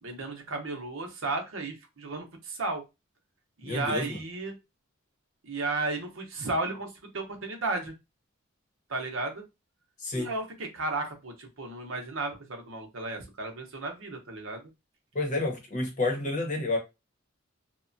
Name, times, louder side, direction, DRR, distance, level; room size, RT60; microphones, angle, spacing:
voice 1, 0.0-2.8 3.6-4.5 5.4-7.9 8.9-9.4 10.1-14.6, right 3 dB, 65° right, 0.7 m, -34 dB
voice 2, 3.6-4.2 10.0-10.3 15.1-16.8, left 2 dB, 35° left, 0.8 m, -29 dB
2.9 x 2.1 x 2.5 m
head